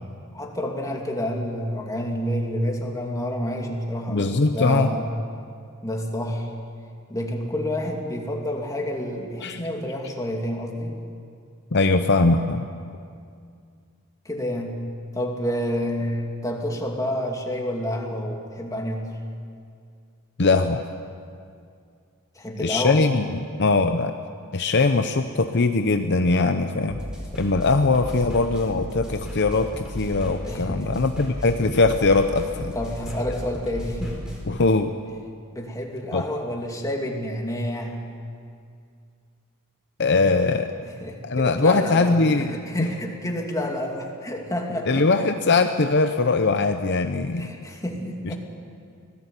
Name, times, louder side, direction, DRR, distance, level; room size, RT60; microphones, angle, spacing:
voice 1, 0.3-5.0 5.8-6.5 7.1-10.9 14.2-14.8 15.1-19.1 22.4-23.1 30.4-31.0 32.7-34.2 35.5-38.0 40.8-45.1 47.4-48.4, left 1 dB, 15° left, 1 dB, 2.6 m, -29 dB
voice 2, 4.1-4.9 9.4-9.6 11.7-12.7 20.4-20.8 22.6-24.1 24.5-27.0 27.4-32.7 34.5-34.9 36.1-36.2 40.0-40.7 41.2-42.5 42.8-42.9 44.9-47.5 48.2-48.4, left 3 dB, 50° left, 7 dB, 0.8 m, -21 dB
sound 1, 26.9-34.4, equal, 5° right, 5.0 m, -35 dB
25.0 x 17.5 x 8.3 m, 2.3 s
head